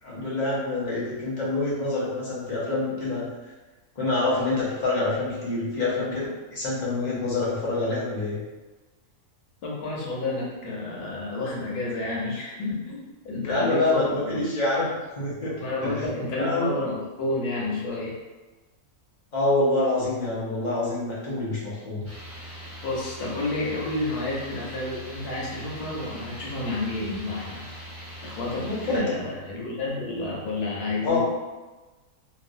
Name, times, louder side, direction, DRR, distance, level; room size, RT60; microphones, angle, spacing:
voice 1, 0.0-3.3 4.0-8.4 13.5-16.1 16.4-16.7 19.3-22.1 28.6-29.2 31.0-31.2, left 2 dB, 40° left, -7 dB, 0.7 m, -26 dB
voice 2, 9.6-13.0 13.2-14.4 15.6-18.1 22.8-27.9 28.2-31.2, left 2 dB, 90° left, -4 dB, 1.4 m, -30 dB
sound 1, 22.0-29.0, equal, 15° right, 0.4 m, -41 dB
3.0 x 2.4 x 2.5 m, 1.2 s
omnidirectional pair, 1.6 m